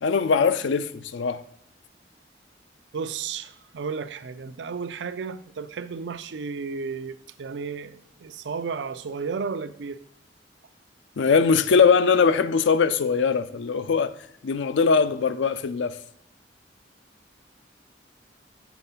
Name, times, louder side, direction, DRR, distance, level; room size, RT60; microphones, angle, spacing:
voice 1, 0.0-1.4 11.2-14.1 14.4-16.0, left 5 dB, 90° left, 0.4 m, -21 dB
voice 2, 2.9-10.0, right 5 dB, 75° right, 0.4 m, -33 dB
7.0 x 4.5 x 5.4 m
head